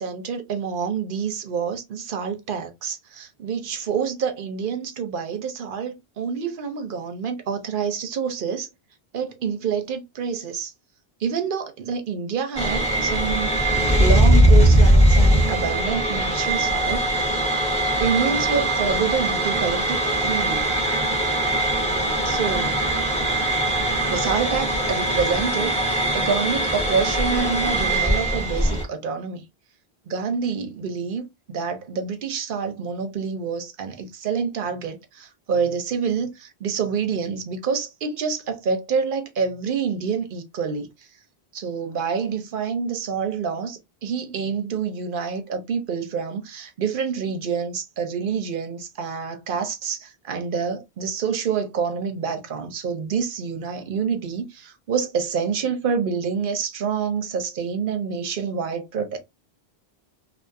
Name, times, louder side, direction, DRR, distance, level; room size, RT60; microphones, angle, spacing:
voice 1, 0.0-8.7 9.1-10.7 11.2-17.0 18.0-20.7 22.2-22.8 24.1-29.4 30.1-40.9 41.5-59.2, right 6 dB, 60° right, 0.7 m, -27 dB
sound 1, 12.5-28.8, right 1 dB, 5° left, 1.0 m, -20 dB
2.5 x 2.3 x 2.5 m
omnidirectional pair, 1.1 m